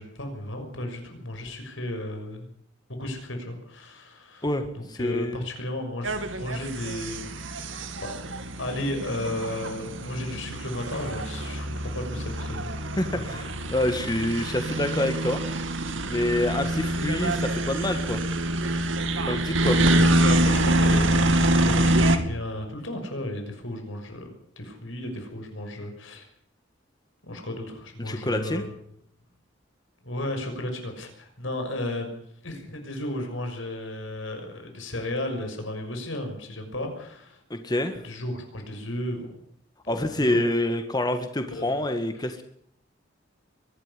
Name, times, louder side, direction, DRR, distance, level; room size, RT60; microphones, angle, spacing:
voice 1, 0.0-2.5 2.9-4.5 4.7-6.1 6.3-7.2 7.5-8.2 8.6-12.7 13.1-13.4 19.1-19.3 19.7-24.3 24.6-26.2 27.2-28.7 30.0-37.4 38.0-39.3 39.8-40.4 41.5-41.8, left 1 dB, 90° left, 5 dB, 6.3 m, -34 dB
voice 2, 4.4-5.4 13.0-15.4 16.1-18.2 19.3-19.8 28.0-28.6 37.5-38.0 39.9-42.4, left 1 dB, 20° left, 7 dB, 1.8 m, -27 dB
sound 1, 6.0-22.2, right 1 dB, 85° right, 2.5 m, -25 dB
23.5 x 12.0 x 9.9 m, 0.66 s
head